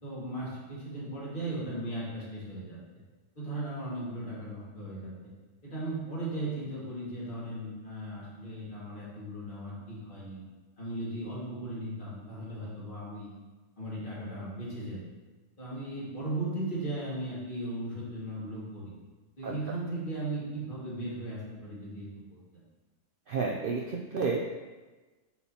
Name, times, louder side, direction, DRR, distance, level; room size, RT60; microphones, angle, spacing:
voice 1, 0.0-2.8 3.4-5.1 5.6-10.4 10.8-13.3 13.8-15.0 15.6-18.9 19.4-22.6, right 1 dB, 40° left, -7 dB, 2.0 m, -37 dB
voice 2, 23.3-24.4, right 4 dB, 60° right, 0 dB, 0.6 m, -30 dB
8.3 x 4.3 x 2.8 m, 1.2 s
omnidirectional pair, 1.3 m